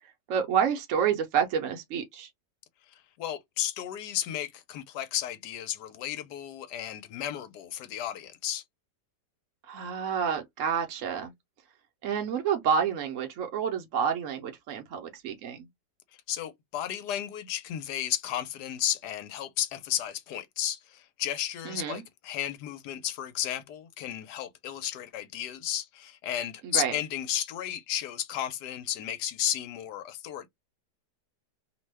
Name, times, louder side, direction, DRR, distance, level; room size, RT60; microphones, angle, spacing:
voice 1, 0.3-2.3 9.7-11.3 12.0-15.7 21.7-22.0 26.6-27.0, right 7 dB, 65° right, 0.8 m, -29 dB
voice 2, 2.9-8.6 16.3-30.5, left 11 dB, 80° left, 1.2 m, -33 dB
2.9 x 2.1 x 3.2 m
omnidirectional pair, 1.8 m